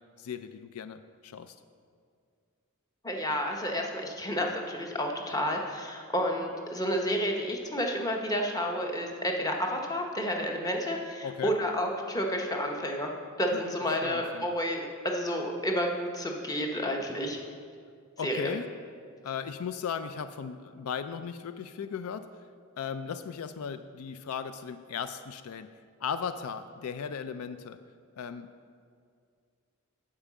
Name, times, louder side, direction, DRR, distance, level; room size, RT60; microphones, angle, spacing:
voice 1, 0.2-1.6 11.2-11.6 13.5-13.7 14.0-14.6 18.2-18.7 19.2-22.3 22.8-25.7 26.0-27.8 28.2-28.5, left 7 dB, 75° left, 11 dB, 0.4 m, -37 dB
voice 2, 3.0-13.1 13.4-17.4 18.2-18.5, equal, 15° left, 1 dB, 0.9 m, -30 dB
8.7 x 5.6 x 7.2 m, 2.2 s
head